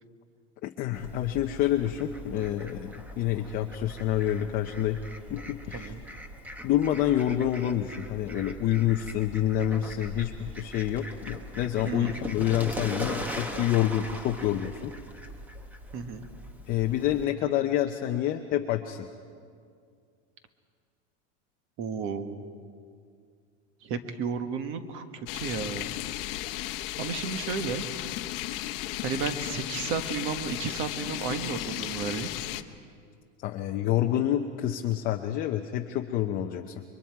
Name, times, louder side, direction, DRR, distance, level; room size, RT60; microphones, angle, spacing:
voice 1, 0.6-5.0 5.3-5.9 6.6-14.9 16.7-19.1 33.4-36.8, left 11 dB, 25° left, 4 dB, 0.6 m, -28 dB
Fowl, 0.9-17.2, equal, 5° right, 0.8 m, -41 dB
voice 2, 11.8-12.2 15.9-16.3 21.8-22.4 23.8-25.9 27.0-27.8 29.0-32.3, right 6 dB, 35° right, 8 dB, 1.3 m, -33 dB
sound 1, 25.3-32.6, left 15 dB, 50° left, 0.9 m, -35 dB
30.0 x 23.5 x 4.7 m, 2.3 s
supercardioid pair, 170°, 35 cm